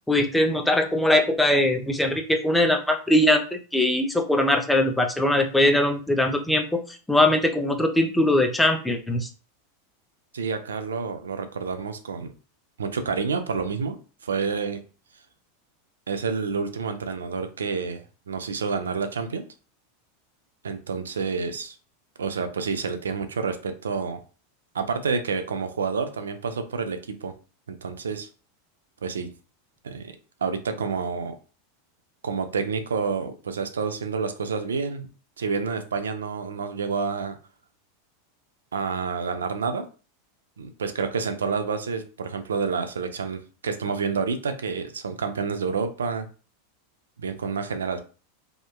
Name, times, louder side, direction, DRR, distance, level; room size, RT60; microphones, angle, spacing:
voice 1, 0.1-6.8 7.1-9.3, left 1 dB, 5° left, 4 dB, 0.4 m, -21 dB
voice 2, 10.3-12.3 12.8-14.0 14.2-14.8 16.1-18.0 18.3-19.4 20.6-21.8 22.2-24.2 24.7-27.3 27.7-28.3 29.0-29.3 29.8-30.1 30.4-31.3 32.2-35.1 35.4-37.4 38.7-39.9 40.6-46.3 47.2-48.0, right 5 dB, 90° right, 8 dB, 0.3 m, -29 dB
2.8 x 2.1 x 2.2 m, 0.35 s
hypercardioid pair, 100°, 0 cm